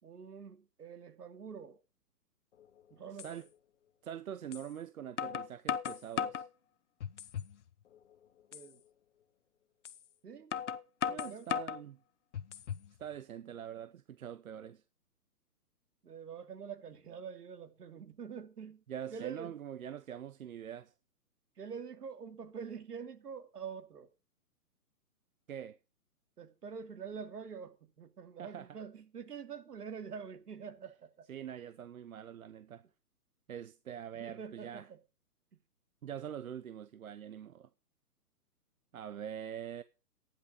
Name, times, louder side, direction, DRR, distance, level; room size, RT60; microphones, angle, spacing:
voice 1, 0.0-1.8 2.9-3.5 8.5-8.8 10.2-10.5 11.1-11.5 14.5-14.7 16.0-18.8 19.1-19.5 21.6-24.1 26.4-31.3 34.2-35.0, right 6 dB, 80° right, 2.6 m, -46 dB
sound 1, 2.6-2.7 3.2-3.3 4.5-4.7 5.2-6.5 7.0-7.5 7.9-8.0 8.5-8.7 9.8-10.0 10.5-11.8 12.3-12.9, left 8 dB, 50° left, 0.8 m, -36 dB
voice 2, 3.1-3.5 4.0-6.4 11.1-12.0 13.0-14.8 18.9-20.9 25.5-25.8 28.4-28.8 31.3-32.8 33.5-34.9 36.0-37.7 38.9-39.8, right 9 dB, 60° right, 0.9 m, -44 dB
12.5 x 10.5 x 5.1 m
hypercardioid pair, 160°, 47 cm